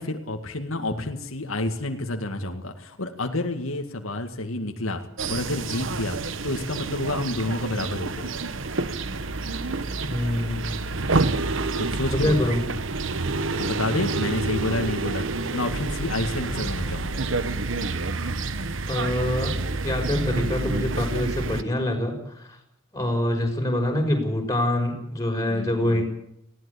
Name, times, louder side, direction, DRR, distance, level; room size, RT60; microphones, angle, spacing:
voice 1, 0.0-5.0 5.3-6.2 6.4-8.3 11.8-12.5 13.6-15.2 15.5-17.2 25.5-26.0, left 2 dB, 85° left, 5 dB, 2.1 m, -29 dB
sound 1, 5.2-21.6, right 3 dB, 65° right, 1.2 m, -28 dB
voice 2, 10.1-10.8 12.1-12.6 18.9-19.5 19.8-22.6 22.9-26.0, left 1 dB, 15° left, 2 dB, 6.1 m, -25 dB
20.0 x 16.5 x 8.7 m, 0.75 s
head